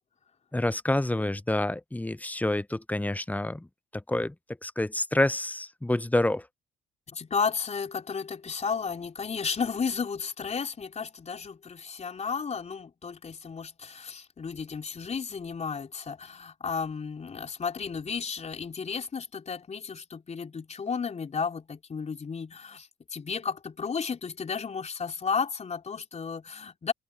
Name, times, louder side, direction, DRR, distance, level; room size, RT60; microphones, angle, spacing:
voice 1, 0.5-3.7 3.9-4.3 4.6-6.4, left 1 dB, 10° left, 1.0 m, -28 dB
voice 2, 7.1-26.9, left 5 dB, 35° left, 3.7 m, -33 dB
hypercardioid pair, 50°, 19 cm